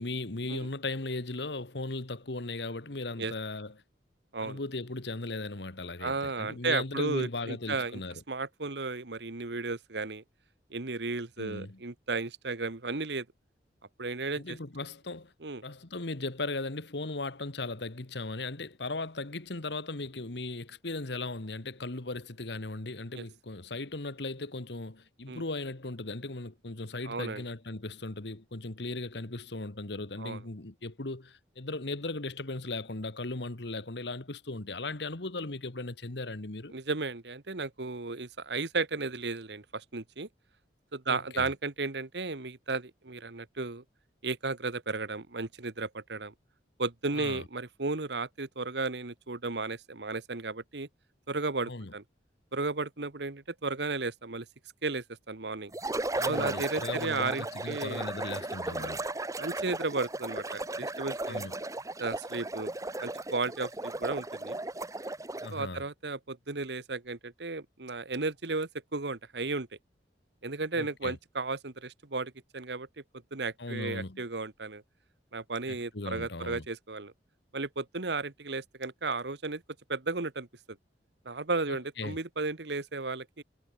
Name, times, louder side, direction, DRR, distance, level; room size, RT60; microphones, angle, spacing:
voice 1, 0.0-3.7 4.4-8.1 11.4-11.8 14.3-15.3 15.6-36.7 41.1-41.5 47.1-47.4 51.7-51.9 56.2-59.0 61.3-61.5 65.4-65.8 70.8-71.1 73.6-74.2 75.7-76.6 82.0-82.2, left 2 dB, 70° left, 1.7 m, -37 dB
voice 2, 6.0-8.0 8.3-10.2 10.7-13.2 14.0-14.6 15.4-15.6 23.1-23.2 25.3-25.4 27.0-27.4 30.2-30.4 36.7-40.3 40.9-43.8 44.2-46.3 46.8-50.9 51.3-52.0 52.5-54.5 54.8-55.7 56.3-58.1 58.6-58.9 59.4-61.5 62.0-62.7 63.0-64.6 65.5-69.7 70.4-72.9 73.3-74.8 75.3-77.1 77.5-79.6 79.9-80.8 81.2-83.4, right 3 dB, 70° right, 1.4 m, -34 dB
sound 1, 55.7-65.6, right 2 dB, 20° right, 1.3 m, -35 dB
head